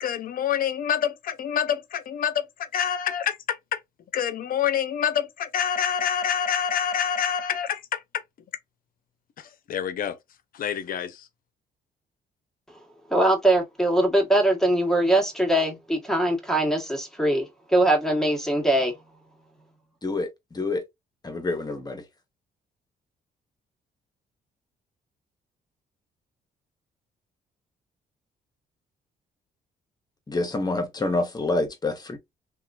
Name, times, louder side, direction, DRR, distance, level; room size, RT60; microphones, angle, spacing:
voice 1, 0.0-2.4 2.7-3.8 4.1-8.0 9.7-10.2 10.5-11.2, left 8 dB, 60° left, 0.6 m, -26 dB
voice 2, 13.1-18.9, right 1 dB, 5° left, 1.2 m, -22 dB
voice 3, 21.2-22.0 30.3-32.2, left 2 dB, 25° left, 1.0 m, -27 dB
2.9 x 2.4 x 2.3 m
cardioid pair, 90°, 17 cm